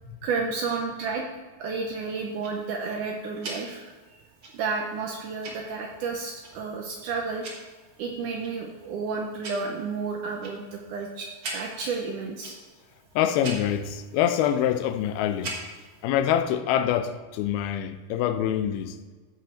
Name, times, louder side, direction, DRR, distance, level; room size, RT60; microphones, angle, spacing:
voice 1, 0.2-1.3 1.6-4.2 4.5-7.5 8.0-12.6, right 4 dB, 75° right, 1.9 m, -31 dB
Tick-tock, 2.0-16.0, right 2 dB, 45° right, 1.7 m, -44 dB
voice 2, 13.2-15.6 16.0-19.0, left 10 dB, 85° left, 2.5 m, -25 dB
15.5 x 5.3 x 4.3 m
omnidirectional pair, 4.4 m